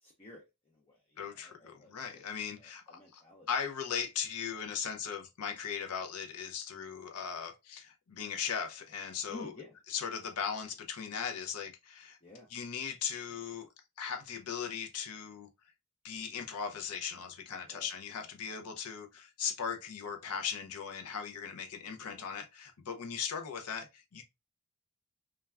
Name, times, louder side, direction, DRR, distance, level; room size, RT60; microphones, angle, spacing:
voice 1, 0.0-2.2 2.6-3.5 9.3-9.7 12.2-12.5 17.7-17.9 22.0-22.2, left 3 dB, 25° left, 0.5 m, -51 dB
voice 2, 1.2-3.2 3.5-9.5 9.9-12.2 12.5-13.7 14.0-15.5 16.0-24.2, left 7 dB, 85° left, 0.5 m, -38 dB
3.2 x 2.3 x 2.3 m
head